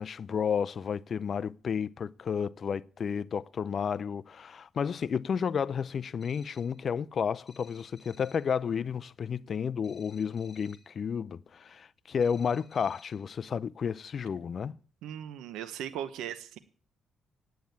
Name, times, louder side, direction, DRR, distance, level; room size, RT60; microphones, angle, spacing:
voice 1, 0.0-14.8, left 7 dB, 50° left, 0.5 m, -32 dB
sound 1, 6.2-6.8 7.5-8.6 9.8-11.0 12.2-13.3, left 5 dB, 35° left, 2.6 m, -58 dB
voice 2, 15.0-16.6, right 10 dB, 90° right, 0.8 m, -38 dB
9.4 x 8.6 x 9.4 m
cardioid pair, 90°, 0 cm